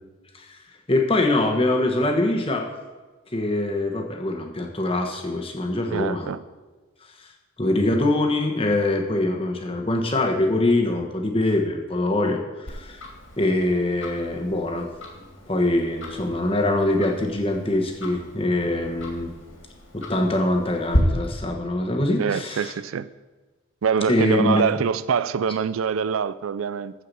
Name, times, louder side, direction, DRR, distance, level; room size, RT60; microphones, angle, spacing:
voice 1, 0.9-2.7 3.3-6.3 7.6-13.0 13.4-14.9 15.2-19.3 19.9-22.7 24.1-24.7, left 1 dB, 25° left, 1.2 m, -23 dB
voice 2, 5.9-6.4 22.2-23.1 23.8-26.9, right 7 dB, 80° right, 0.4 m, -24 dB
Tick-tock, 12.7-21.0, equal, 70° left, 2.3 m, -34 dB
14.0 x 4.8 x 6.8 m
head